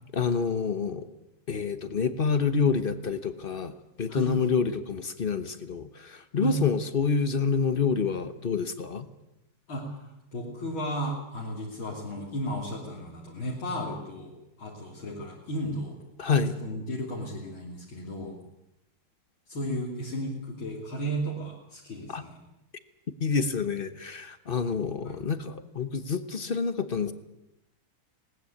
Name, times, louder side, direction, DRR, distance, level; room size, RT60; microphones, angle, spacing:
voice 1, 0.1-1.1 1.5-3.7 4.0-9.1 16.2-16.5 22.1-22.2 23.2-27.1, left 5 dB, 50° left, 11 dB, 0.6 m, -27 dB
voice 2, 9.7-16.0 16.6-18.4 19.5-22.4 25.1-25.2, right 1 dB, 65° left, -3 dB, 3.6 m, -34 dB
20.0 x 18.5 x 8.5 m, 0.90 s
omnidirectional pair, 2.4 m